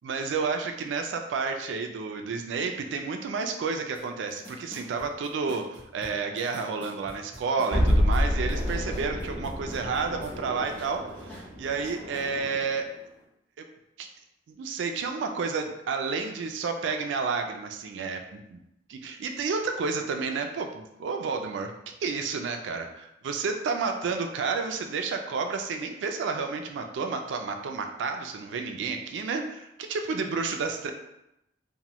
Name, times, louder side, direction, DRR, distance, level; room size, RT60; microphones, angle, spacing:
voice 1, 0.0-12.9 14.0-14.1 14.5-18.6 18.9-21.7 22.0-30.9, right 4 dB, 80° right, 5 dB, 0.3 m, -31 dB
sound 1, 3.9-4.0 4.3-10.4 10.6-12.3, equal, 10° left, 0.8 m, -47 dB
sound 2, 7.7-12.8, equal, 30° right, 0.9 m, -28 dB
2.9 x 2.2 x 2.9 m, 0.85 s
head